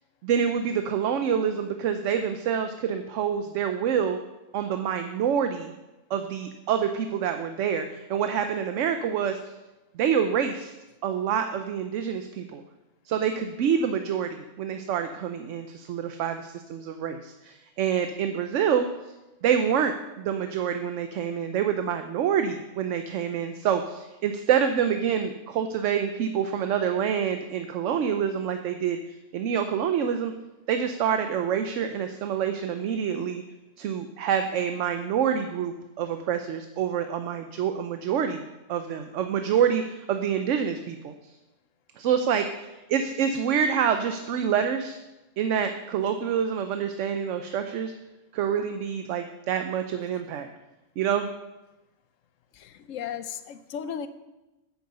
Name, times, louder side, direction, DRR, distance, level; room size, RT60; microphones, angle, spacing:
voice 1, 0.2-4.2 4.5-5.7 6.1-9.4 9.9-10.7 11.0-12.6 13.1-18.9 19.4-29.0 29.3-30.3 30.7-33.4 33.8-38.4 38.7-41.1 42.0-45.0 45.4-47.9 48.3-50.5 51.0-51.3, right 8 dB, 75° right, 7 dB, 0.9 m, -27 dB
voice 2, 52.6-54.1, left 8 dB, 85° left, 12 dB, 1.0 m, -35 dB
9.4 x 6.5 x 6.8 m, 1.0 s
omnidirectional pair, 1.3 m